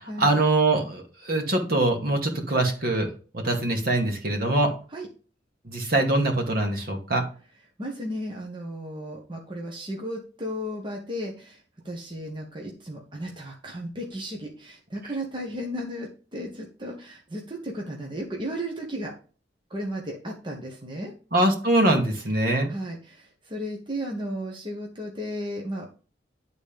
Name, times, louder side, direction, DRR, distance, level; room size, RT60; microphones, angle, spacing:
voice 1, 0.2-3.1 3.3-4.7 5.7-7.2 21.3-22.7, right 2 dB, 55° right, 3 dB, 2.2 m, -23 dB
voice 2, 7.8-11.6 11.8-19.1 19.7-21.1 22.7-25.9, equal, 25° right, 0 dB, 1.4 m, -34 dB
11.0 x 4.1 x 5.2 m, 0.38 s
head